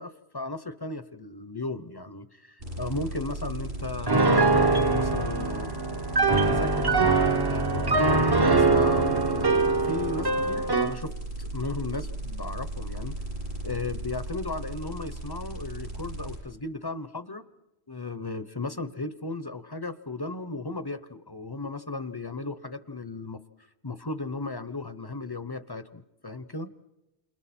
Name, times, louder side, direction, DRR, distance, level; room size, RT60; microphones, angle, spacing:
voice 1, 0.0-5.7 6.2-11.1 11.4-13.2 13.6-17.4 17.9-23.4 23.8-26.7, left 3 dB, 25° left, 12 dB, 0.7 m, -35 dB
sound 1, 2.6-16.4, right 1 dB, 75° right, 8.5 m, -36 dB
Piano, 4.1-11.0, right 3 dB, 25° right, 0.7 m, -23 dB
29.0 x 27.5 x 4.3 m, 0.98 s
omnidirectional pair, 1.1 m